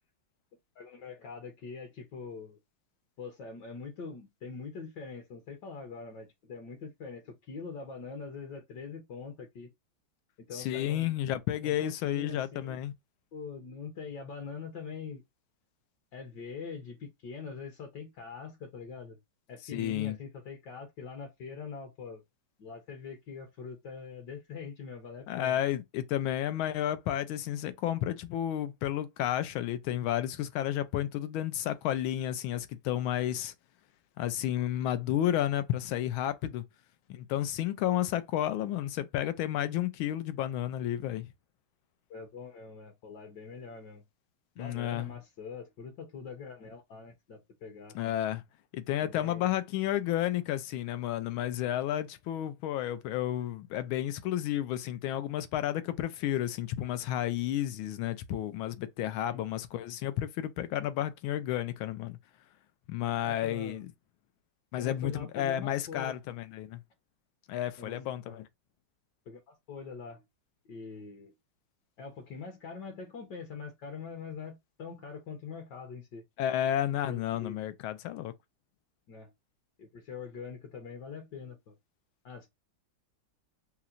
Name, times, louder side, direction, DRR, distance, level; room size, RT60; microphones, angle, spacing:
voice 1, 0.7-2.6 3.2-9.7 10.4-11.1 11.6-12.8 13.3-15.2 16.1-19.2 19.5-22.2 22.6-25.6 42.1-44.0 44.5-48.2 49.0-49.5 59.3-59.4 63.2-63.8 64.8-66.2 67.8-68.0 68.3-68.4 69.3-70.2 70.6-71.3 72.0-76.2 77.1-77.6 79.1-79.3 79.8-81.7 82.2-82.5, left 5 dB, 65° left, 1.3 m, -43 dB
voice 2, 10.5-12.9 19.6-20.2 25.3-33.5 34.2-36.6 37.1-41.3 44.6-45.1 47.9-48.4 48.7-62.2 62.9-63.9 64.7-66.8 67.5-68.5 76.4-78.3, left 12 dB, 85° left, 1.4 m, -32 dB
5.6 x 2.0 x 2.4 m
omnidirectional pair, 2.2 m